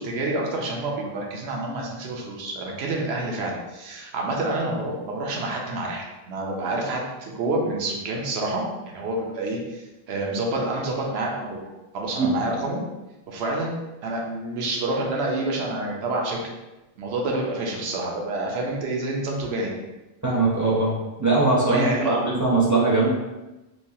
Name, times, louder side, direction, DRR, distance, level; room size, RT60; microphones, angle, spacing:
voice 1, 0.0-11.6 11.9-12.8 13.3-13.7 14.0-16.4 17.0-19.7 21.7-22.2, right 2 dB, 90° right, 0 dB, 0.9 m, -28 dB
voice 2, 20.2-20.9 21.2-23.1, right 3 dB, 25° right, -6 dB, 0.4 m, -21 dB
3.2 x 2.2 x 2.7 m, 1.1 s
omnidirectional pair, 1.1 m